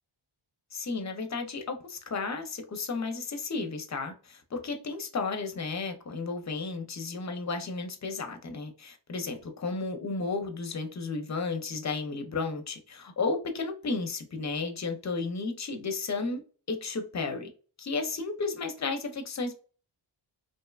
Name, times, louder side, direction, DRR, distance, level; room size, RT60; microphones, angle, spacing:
voice 1, 0.7-16.4 16.7-17.5 17.8-19.6, left 4 dB, 35° left, 0.5 m, -33 dB
2.7 x 2.2 x 2.3 m
wide cardioid pair, 80°, 49 cm